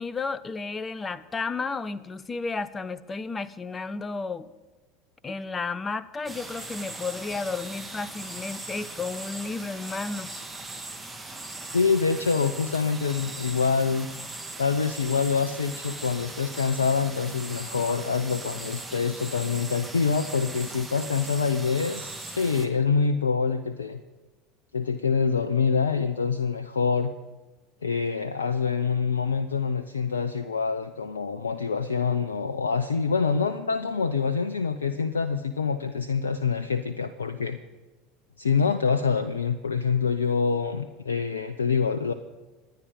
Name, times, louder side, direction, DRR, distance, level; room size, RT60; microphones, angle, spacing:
voice 1, 0.0-4.5 5.2-10.3, left 4 dB, 25° left, 16 dB, 1.0 m, -32 dB
sound 1, 6.3-22.7, right 2 dB, 10° right, 2.7 m, -39 dB
voice 2, 11.7-14.1 14.6-24.0 24.7-27.1 27.8-37.6 38.4-42.1, left 5 dB, 85° left, 10 dB, 0.7 m, -26 dB
25.5 x 10.5 x 5.4 m, 1.2 s
hypercardioid pair, 75°, 0 cm